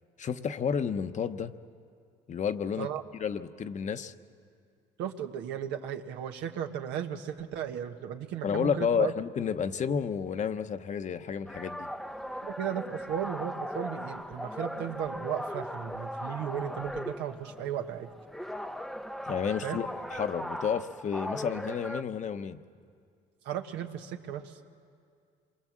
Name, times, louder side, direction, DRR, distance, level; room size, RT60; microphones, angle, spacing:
voice 1, 0.2-1.5 2.3-2.9 3.1-4.1 8.4-11.9 19.3-22.6, left 7 dB, 45° left, 9 dB, 1.0 m, -31 dB
voice 2, 5.0-9.1 12.4-18.1 19.6-19.8 23.4-24.6, right 9 dB, 85° right, 5 dB, 1.4 m, -35 dB
sound 1, 11.5-22.0, equal, ahead, 0.7 m, -38 dB
27.0 x 23.0 x 7.5 m, 2.3 s
cardioid pair, 95°, 18 cm